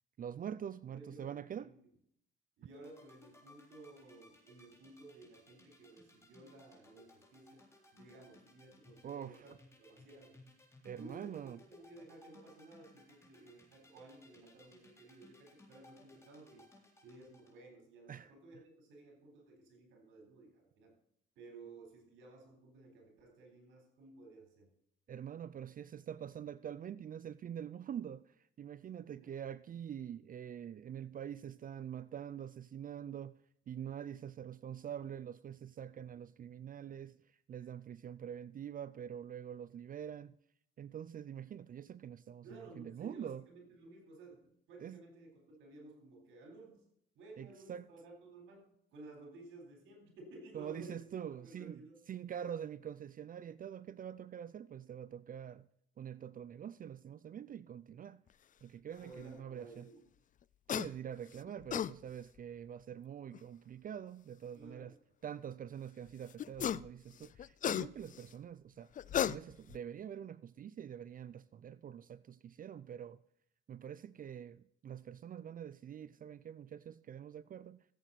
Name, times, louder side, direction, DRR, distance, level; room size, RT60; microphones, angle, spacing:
voice 1, 0.2-1.7 9.0-9.4 10.8-11.6 18.1-18.3 25.1-33.4 33.7-40.3 40.8-43.4 44.8-45.0 47.4-47.9 50.5-51.8 52.1-55.7 56.0-58.2 58.6-59.9 60.7-64.9 65.2-68.9 69.2-73.2 73.7-77.8, right 9 dB, 45° right, 0.5 m, -45 dB
voice 2, 0.9-1.8 2.6-7.6 7.9-9.5 9.8-10.4 11.0-16.6 17.0-20.9 21.4-24.7 29.0-29.3 42.4-46.8 47.2-51.0 51.4-52.0 59.0-60.0 64.5-64.9, right 2 dB, 90° right, 4.0 m, -55 dB
sound 1, 2.8-17.5, left 2 dB, 15° left, 3.8 m, -61 dB
sound 2, 60.7-60.9 61.5-61.9 63.3-63.4 66.4-66.9 67.2-68.2 69.0-69.8, left 10 dB, 40° left, 0.4 m, -34 dB
15.0 x 7.9 x 4.1 m
cardioid pair, 90°, 20 cm